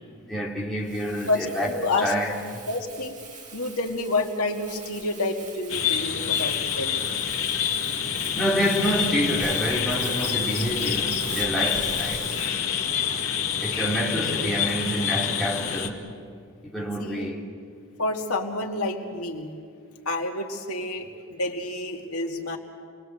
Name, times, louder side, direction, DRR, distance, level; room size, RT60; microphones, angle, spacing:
voice 1, 0.3-1.7 2.0-2.6 8.3-12.4 13.6-16.0 16.6-17.4, equal, ahead, 3.0 m, -27 dB
Crumpling crinkling, 0.8-12.5, right 4 dB, 35° right, 2.3 m, -42 dB
voice 2, 1.3-2.1 2.7-3.1 3.5-7.0 17.0-17.3 18.0-19.5 20.1-22.6, left 2 dB, 90° left, 2.4 m, -29 dB
sound 1, 5.7-15.9, left 8 dB, 70° left, 2.1 m, -27 dB
28.0 x 21.0 x 7.9 m
head